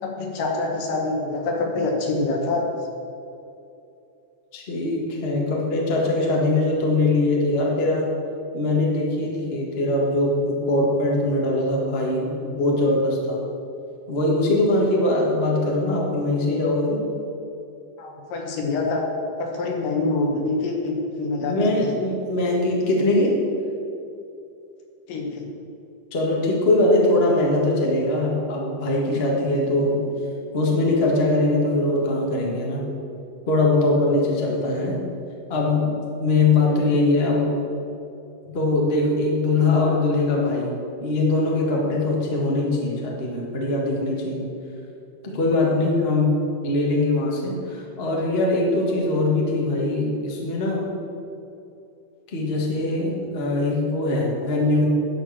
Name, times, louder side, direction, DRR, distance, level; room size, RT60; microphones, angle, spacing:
voice 1, 0.0-2.6 18.0-19.0 19.4-21.6 21.8-21.9 25.1-25.5 54.4-54.8, left 3 dB, 80° left, 1 dB, 2.9 m, -26 dB
voice 2, 4.5-8.1 8.5-13.4 14.1-17.0 21.4-23.4 26.1-30.0 30.5-32.8 33.5-35.0 35.5-37.5 38.4-44.4 45.2-46.4 46.6-50.9 52.3-54.9, left 2 dB, 45° left, -2 dB, 0.8 m, -22 dB
11.0 x 4.6 x 7.4 m, 2.7 s
omnidirectional pair, 3.8 m